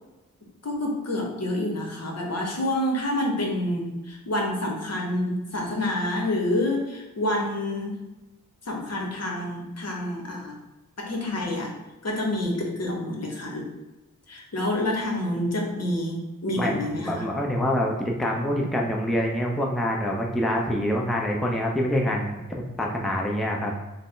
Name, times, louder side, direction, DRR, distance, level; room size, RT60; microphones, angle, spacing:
voice 1, 0.6-8.0 8.6-10.6 11.0-11.7 12.0-13.7 14.3-17.2, left 1 dB, 50° left, 0 dB, 1.1 m, -28 dB
voice 2, 16.6-23.7, equal, ahead, 0 dB, 0.6 m, -26 dB
3.6 x 2.2 x 3.7 m, 1.1 s
supercardioid pair, 45°, 34 cm